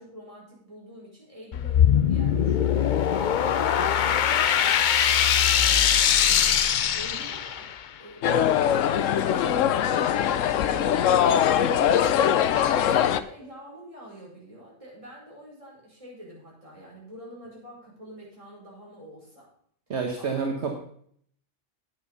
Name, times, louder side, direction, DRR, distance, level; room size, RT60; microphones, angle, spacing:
voice 1, 0.0-5.3 5.6-6.5 6.9-7.7 8.0-19.5 20.2-20.4, equal, 25° right, -5 dB, 5.6 m, -46 dB
sound 1, 1.5-7.8, left 9 dB, 55° left, 0.5 m, -22 dB
sound 2, 8.2-13.2, left 9 dB, 85° left, 1.0 m, -22 dB
voice 2, 19.9-20.8, right 5 dB, 60° right, 2 dB, 1.4 m, -28 dB
9.8 x 9.1 x 5.4 m, 0.62 s
omnidirectional pair, 1.3 m